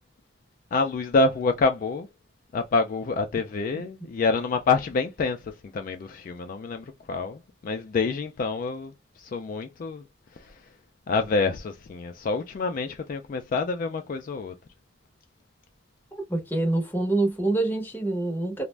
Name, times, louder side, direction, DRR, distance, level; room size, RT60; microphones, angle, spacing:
voice 1, 0.7-2.1 2.5-10.0 10.3-10.7 11.1-14.5, left 3 dB, 45° left, 0.3 m, -27 dB
voice 2, 16.1-18.7, right 2 dB, 10° left, 0.7 m, -26 dB
2.4 x 2.0 x 3.1 m
head